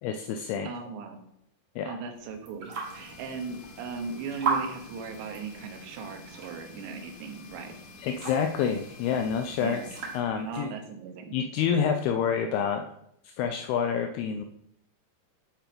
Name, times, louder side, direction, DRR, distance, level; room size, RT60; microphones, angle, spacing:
voice 1, 0.0-0.7 1.8-2.0 8.0-9.8 10.1-10.8 11.3-12.8 13.2-14.4, left 7 dB, 90° left, 5 dB, 2.2 m, -28 dB
voice 2, 0.6-1.2 1.8-7.7 9.6-9.9 10.5-11.3, right 5 dB, 80° right, 5 dB, 3.3 m, -38 dB
sound 1, 2.1-10.7, right 5 dB, 60° right, 1.4 m, -38 dB
sound 2, 2.8-10.2, left 3 dB, 70° left, 2.1 m, -49 dB
8.9 x 4.4 x 5.0 m, 0.76 s
omnidirectional pair, 5.1 m